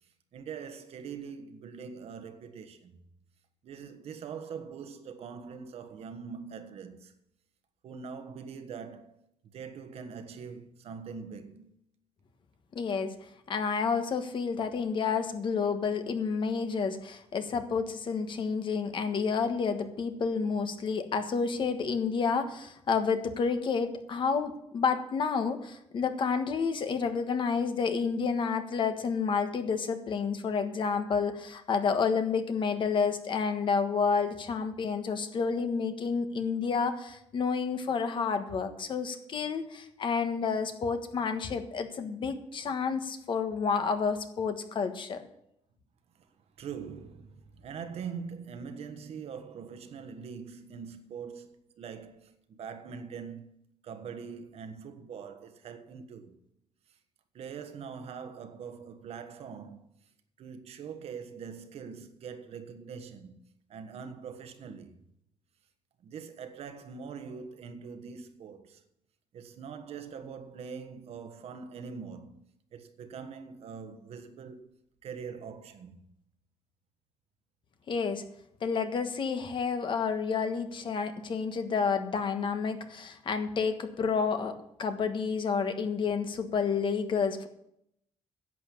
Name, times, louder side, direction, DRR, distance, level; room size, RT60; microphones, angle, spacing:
voice 1, 0.0-3.0 3.6-7.1 7.8-9.2 9.5-11.8 46.2-46.3 46.6-56.4 57.3-59.9 60.4-63.4 63.7-64.9 66.0-68.8 69.3-74.7 75.0-76.0, right 6 dB, 60° right, 1.4 m, -43 dB
voice 2, 12.7-13.1 13.5-45.2 77.9-78.2 78.6-87.5, left 5 dB, 45° left, 1.4 m, -30 dB
11.0 x 7.7 x 8.5 m
cardioid pair, 150°, 12 cm